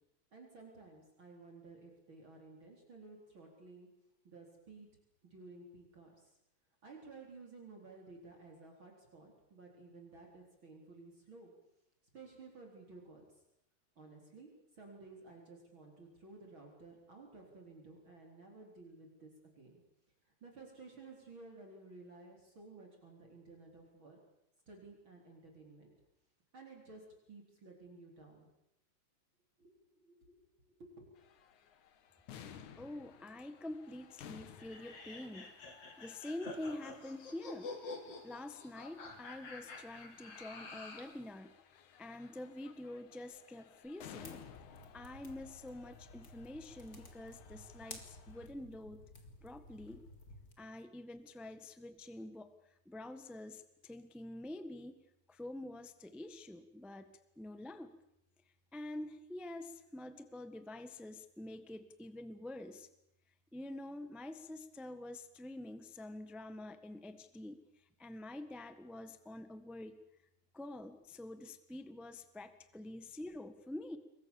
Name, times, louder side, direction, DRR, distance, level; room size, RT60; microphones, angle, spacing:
voice 1, 0.3-3.9 4.2-4.9 5.2-6.4 6.8-11.5 12.1-13.4 14.0-14.5 14.7-19.8 20.4-24.2 24.7-25.9 26.5-28.5 29.6-31.1, right 3 dB, 40° right, 0 dB, 4.8 m, -55 dB
sound 1, 31.2-48.5, left 8 dB, 90° left, 3.0 m, -58 dB
voice 2, 32.8-35.5 36.0-37.7 38.2-41.5 42.0-44.4 44.9-49.0 49.4-50.0 50.6-52.5 52.8-55.0 55.3-57.1 57.4-57.9 58.7-62.9 63.5-67.6 68.0-70.0 70.5-74.0, left 1 dB, ahead, 9 dB, 0.4 m, -47 dB
sound 2, 34.6-41.1, left 3 dB, 55° left, 4.2 m, -48 dB
sound 3, 44.2-50.5, left 2 dB, 30° left, 3.3 m, -55 dB
28.0 x 22.5 x 7.2 m, 0.83 s
omnidirectional pair, 3.3 m